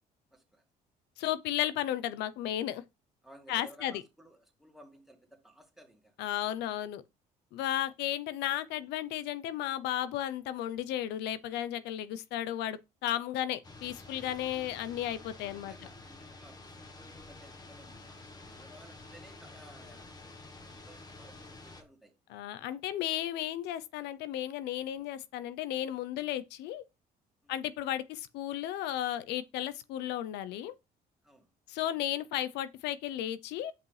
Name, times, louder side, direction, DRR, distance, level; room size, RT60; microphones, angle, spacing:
voice 1, 0.3-0.7 3.2-6.5 15.4-20.1 20.6-22.5 27.4-27.6 31.2-31.5, right 1 dB, ahead, 2.2 m, -57 dB
voice 2, 1.2-2.8 3.5-4.0 6.2-7.0 7.5-15.7 22.3-26.8 27.5-30.7 31.7-33.7, left 12 dB, 85° left, 0.6 m, -34 dB
sound 1, 13.6-21.8, left 2 dB, 25° left, 1.2 m, -50 dB
8.6 x 5.4 x 3.2 m
cardioid pair, 110°, 17 cm